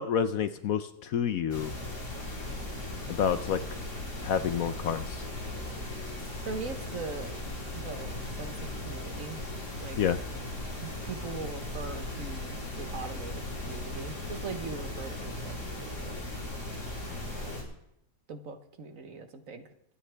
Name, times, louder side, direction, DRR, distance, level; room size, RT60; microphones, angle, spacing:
voice 1, 0.0-1.7 3.1-3.8 4.2-5.2 10.0-10.2, left 8 dB, 65° left, 11 dB, 1.0 m, -29 dB
sound 1, 1.5-17.6, left 1 dB, 45° left, 4.3 m, -38 dB
voice 2, 6.4-7.4 7.7-9.4 9.8-10.0 10.8-16.3 17.1-17.6 18.3-19.7, right 4 dB, 55° right, 8 dB, 1.4 m, -41 dB
24.0 x 9.7 x 3.4 m, 0.80 s
omnidirectional pair, 1.8 m